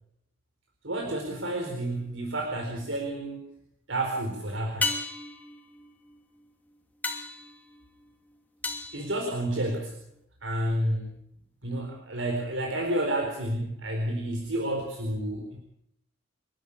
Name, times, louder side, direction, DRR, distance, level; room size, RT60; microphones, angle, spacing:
voice 1, 0.8-3.5 3.9-4.9 8.9-10.0 10.4-11.1 11.6-15.6, right 1 dB, 70° right, 2 dB, 4.4 m, -30 dB
sound 1, 2.5-3.1 4.8-10.0 14.4-14.5, left 3 dB, 10° left, 2.7 m, -36 dB
29.5 x 12.5 x 8.6 m, 0.77 s
head